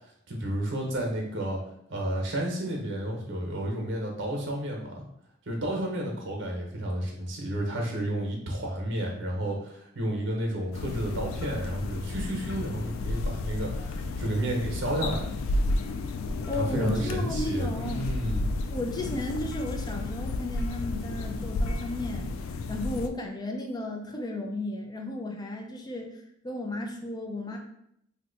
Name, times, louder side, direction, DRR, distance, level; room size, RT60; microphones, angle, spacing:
voice 1, 0.3-1.6 1.9-5.0 5.5-15.3 16.5-18.5, right 1 dB, 65° right, 1 dB, 0.8 m, -31 dB
sound 1, 10.7-23.1, left 2 dB, 85° left, 0.3 m, -32 dB
voice 2, 16.5-18.0 18.7-27.6, left 1 dB, 20° left, 2 dB, 0.4 m, -34 dB
2.8 x 2.2 x 3.9 m, 0.75 s
head